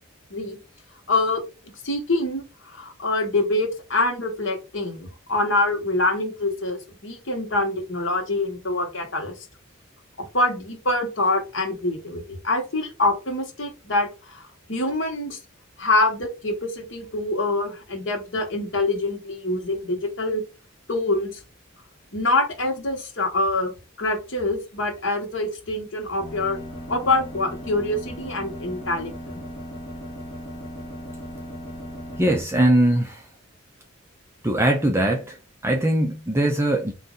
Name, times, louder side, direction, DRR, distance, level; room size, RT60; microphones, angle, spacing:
voice 1, 1.1-9.3 10.2-15.4 15.8-20.4 20.9-21.4 22.1-26.6 26.9-29.4, left 2 dB, 60° left, 1.2 m, -25 dB
sound 1, 26.2-32.4, equal, 20° left, 1.4 m, -37 dB
voice 2, 32.2-33.2 34.4-35.4 35.6-36.9, right 1 dB, 10° right, 0.5 m, -21 dB
4.0 x 2.6 x 3.8 m
head